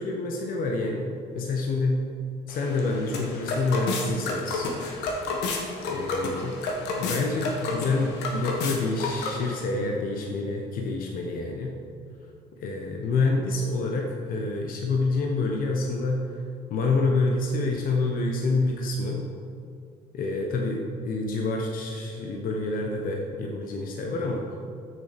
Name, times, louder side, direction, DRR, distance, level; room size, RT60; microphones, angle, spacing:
voice 1, 0.0-2.0 2.5-4.7 5.9-6.6 6.9-11.7 12.6-16.4 16.7-19.2 20.1-24.6, left 3 dB, 60° left, 1 dB, 0.9 m, -27 dB
sound 1, 2.5-9.6, left 3 dB, 85° left, 1.3 m, -31 dB
6.7 x 6.3 x 5.1 m, 2.4 s
cardioid pair, 110°, 17 cm